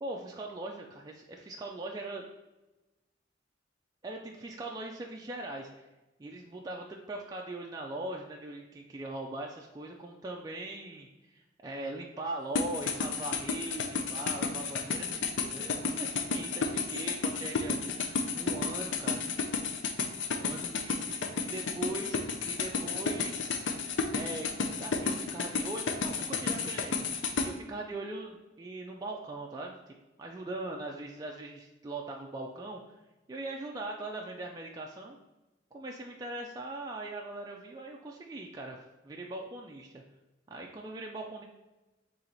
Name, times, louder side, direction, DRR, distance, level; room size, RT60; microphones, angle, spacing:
voice 1, 0.0-2.2 4.0-5.9 6.2-17.8 18.4-19.2 20.4-23.6 24.1-24.5 24.8-27.0 27.4-29.9 30.2-33.0 33.3-35.2 35.7-40.0 40.5-41.4, right 2 dB, 20° right, 0 dB, 0.3 m, -40 dB
sound 1, 12.5-27.5, left 5 dB, 80° left, 0.5 m, -32 dB
4.4 x 3.1 x 3.9 m, 1.1 s
head